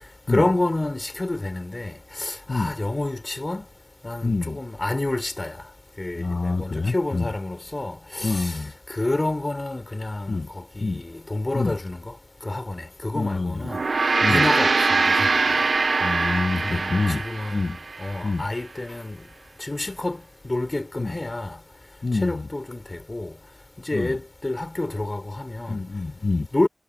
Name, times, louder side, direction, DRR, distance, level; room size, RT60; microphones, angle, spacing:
voice 1, 0.3-3.6 4.0-5.6 6.0-8.6 8.9-12.1 12.4-13.8 14.3-15.3 16.6-19.2 19.6-20.2 20.4-21.6 22.1-23.3 23.9-25.8 26.5-26.7, left 2 dB, 40° left, 4.5 m, -28 dB
voice 2, 4.2-4.6 6.1-7.3 8.2-8.7 10.3-10.5 10.8-11.0 11.5-11.8 13.1-13.7 14.2-14.4 16.0-17.2 17.5-17.8 18.2-18.5 21.0-21.1 22.0-22.5 23.9-24.2 25.7-26.5, left 3 dB, 65° left, 0.7 m, -26 dB
Gong, 13.6-18.2, right 4 dB, 80° right, 0.6 m, -22 dB
wide cardioid pair, 45°, 0 cm